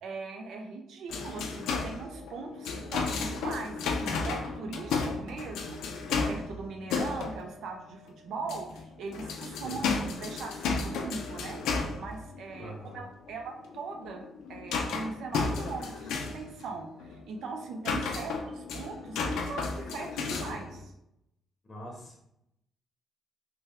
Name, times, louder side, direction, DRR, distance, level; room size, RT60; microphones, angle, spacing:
voice 1, 0.0-9.9 10.1-11.6 12.0-20.9, right 4 dB, 75° right, 3 dB, 0.5 m, -40 dB
sound 1, 1.1-8.1 8.4-20.8, left 4 dB, 85° left, 0.4 m, -34 dB
voice 2, 12.6-13.1 21.6-22.2, equal, 25° left, -1 dB, 0.7 m, -43 dB
3.3 x 2.1 x 3.5 m, 0.81 s
cardioid pair, 90°, 0 cm